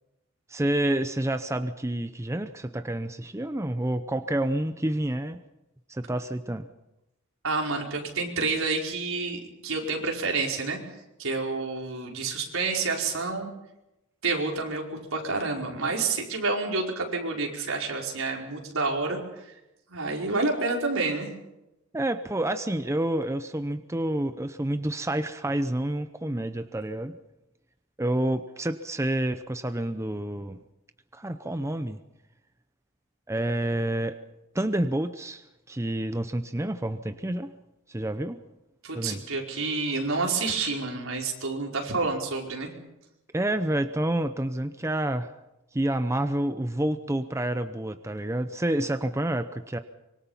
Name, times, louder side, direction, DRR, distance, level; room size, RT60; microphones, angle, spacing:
voice 1, 0.5-5.4 5.9-6.7 21.9-27.2 28.0-30.6 31.1-32.0 33.3-34.2 34.5-37.5 37.9-38.4 38.9-39.2 43.3-45.3 45.7-49.8, right 1 dB, 15° right, 9 dB, 0.7 m, -28 dB
voice 2, 7.4-10.8 11.2-13.5 14.2-19.5 19.9-21.3 38.8-42.7, right 3 dB, 75° right, 0 dB, 4.9 m, -29 dB
25.5 x 23.5 x 5.7 m, 0.92 s
head